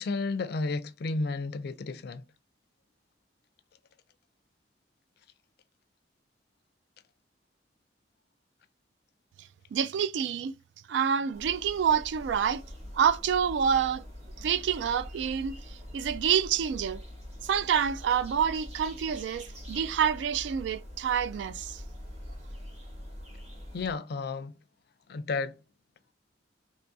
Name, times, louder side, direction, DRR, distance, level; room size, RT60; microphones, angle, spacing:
voice 1, 0.0-2.2 23.7-24.5 25.1-25.5, left 3 dB, 60° left, 0.4 m, -32 dB
voice 2, 9.7-10.5 10.9-12.6 12.9-14.0 14.4-15.6 15.9-17.0 17.4-21.8, right 8 dB, 70° right, 0.3 m, -27 dB
sound 1, 11.3-23.9, equal, 35° right, 1.4 m, -44 dB
4.6 x 3.0 x 2.6 m
head